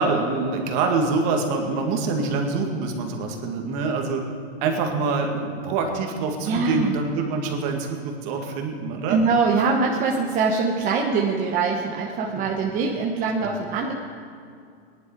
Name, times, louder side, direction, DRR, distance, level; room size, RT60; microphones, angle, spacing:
voice 1, 0.0-4.3 4.6-9.2 13.4-13.5, right 4 dB, 45° right, 3 dB, 2.1 m, -25 dB
voice 2, 6.4-6.9 9.1-13.9, right 4 dB, 25° right, -1 dB, 1.0 m, -23 dB
18.5 x 11.0 x 4.9 m, 2.4 s
supercardioid pair, 150°, 32 cm